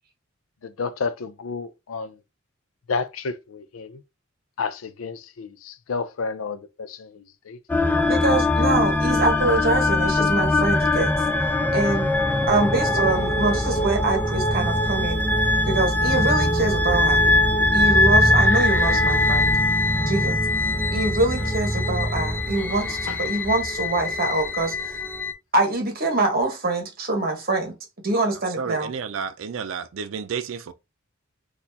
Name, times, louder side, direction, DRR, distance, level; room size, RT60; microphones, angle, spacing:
voice 1, 0.6-2.1 2.9-4.0 4.6-7.6 23.1-23.2, left 4 dB, 90° left, 0.5 m, -31 dB
sound 1, 7.7-25.3, left 2 dB, 10° left, 0.4 m, -22 dB
voice 2, 8.1-11.1 11.7-12.1 12.5-15.2 15.7-17.3 17.7-19.5 20.1-20.4 20.9-25.0 25.5-27.7 28.0-28.9, right 2 dB, 50° right, 1.2 m, -24 dB
sound 2, 11.3-23.9, right 1 dB, 15° right, 1.2 m, -27 dB
voice 3, 28.6-30.7, right 6 dB, 70° right, 0.4 m, -31 dB
4.3 x 2.5 x 2.7 m
head